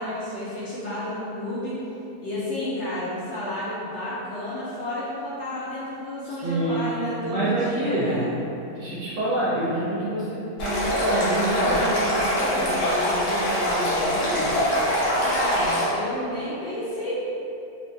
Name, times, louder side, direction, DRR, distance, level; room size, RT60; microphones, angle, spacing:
voice 1, 0.0-1.8 2.2-8.3 15.2-17.1, left 1 dB, 65° left, -9 dB, 0.7 m, -31 dB
voice 2, 6.2-6.9 7.2-8.2 8.7-14.6, right 1 dB, 60° right, -8 dB, 0.9 m, -27 dB
Stream, 10.6-15.8, equal, 90° left, 1.3 m, -24 dB
3.2 x 2.3 x 2.6 m, 2.8 s
omnidirectional pair, 1.6 m